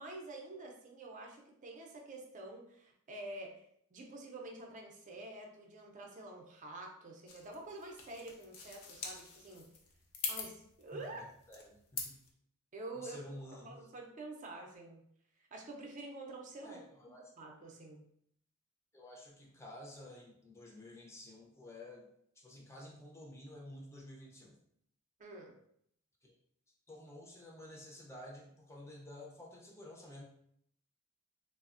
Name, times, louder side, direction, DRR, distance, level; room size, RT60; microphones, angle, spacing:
voice 1, 0.0-3.6 3.9-9.7 10.3-11.2 12.7-13.2 13.6-15.0 15.5-16.8 17.4-18.0 25.2-25.6, right 2 dB, 35° right, 1 dB, 0.5 m, -48 dB
sound 1, 7.3-12.3, left 5 dB, 85° left, 0.6 m, -44 dB
voice 2, 10.9-12.2 12.9-13.9 16.6-17.3 18.9-22.1 22.4-24.6 26.2-26.4 26.9-30.2, left 1 dB, 10° left, -2 dB, 0.5 m, -51 dB
3.2 x 2.0 x 2.4 m, 0.69 s
head